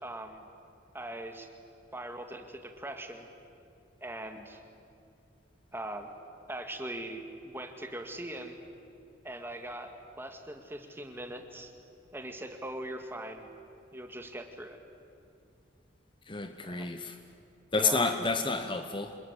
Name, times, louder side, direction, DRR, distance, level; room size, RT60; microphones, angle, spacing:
voice 1, 0.0-0.4 0.9-1.5 1.9-3.3 4.0-4.6 5.7-6.1 6.5-8.6 9.2-9.9 10.2-11.7 12.1-13.5 13.9-14.8 16.6-16.9 17.8-18.1, right 1 dB, 10° right, 5 dB, 2.0 m, -41 dB
voice 2, 16.3-17.2 17.7-19.2, left 3 dB, 25° left, 8 dB, 0.9 m, -30 dB
27.0 x 21.0 x 10.0 m, 2.5 s
head